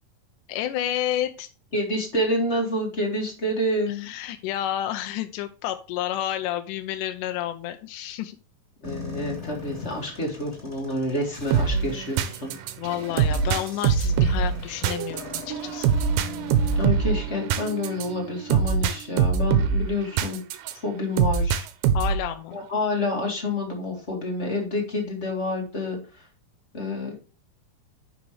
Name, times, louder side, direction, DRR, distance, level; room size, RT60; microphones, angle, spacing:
voice 1, 0.5-1.5 4.0-8.4 12.8-15.9 21.9-22.6, left 12 dB, 80° left, 7 dB, 2.1 m, -30 dB
voice 2, 1.7-4.1 8.8-12.5 16.8-20.4 20.8-21.7 22.5-26.2 26.7-27.1, left 1 dB, 25° left, 0 dB, 1.9 m, -28 dB
sound 1, 8.8-16.8, left 4 dB, 5° left, 3.0 m, -40 dB
sound 2, 11.5-20.7 21.2-22.3, right 7 dB, 90° right, 2.3 m, -23 dB
10.5 x 5.1 x 3.3 m, 0.34 s
omnidirectional pair, 3.8 m